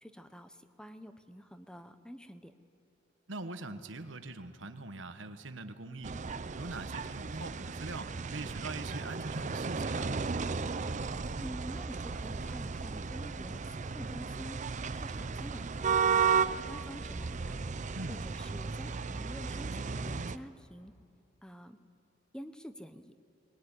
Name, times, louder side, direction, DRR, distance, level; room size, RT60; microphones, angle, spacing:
voice 1, 0.0-2.6 11.4-14.6 14.9-17.6 18.1-20.9 21.4-21.8 22.3-23.1, equal, 5° left, 10 dB, 0.9 m, -48 dB
voice 2, 3.3-6.1 6.5-10.1 17.9-18.2, right 2 dB, 80° right, 9 dB, 1.3 m, -42 dB
sound 1, 6.0-20.4, right 5 dB, 40° right, 0.6 m, -34 dB
21.0 x 20.0 x 10.0 m, 2.6 s
head